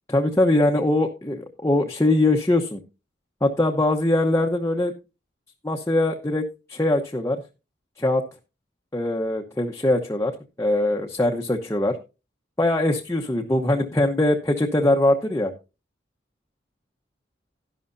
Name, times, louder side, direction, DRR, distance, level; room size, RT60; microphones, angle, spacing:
voice 1, 0.1-2.8 3.4-4.9 5.6-7.4 8.0-8.2 8.9-10.3 10.6-12.0 12.6-15.5, left 1 dB, 15° left, 1 dB, 0.9 m, -22 dB
12.5 x 11.0 x 2.6 m, 0.29 s
head